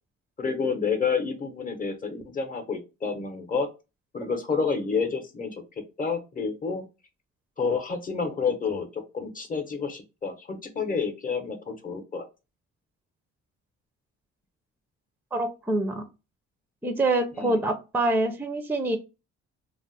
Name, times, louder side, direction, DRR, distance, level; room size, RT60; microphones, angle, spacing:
voice 1, 0.4-3.7 4.1-5.6 6.0-6.8 7.6-12.3 17.3-17.7, left 5 dB, 30° left, 6 dB, 0.8 m, -29 dB
voice 2, 15.3-16.0 16.8-19.0, right 2 dB, 5° right, 8 dB, 0.5 m, -25 dB
2.4 x 2.1 x 3.9 m, 0.28 s
cardioid pair, 90°, 30 cm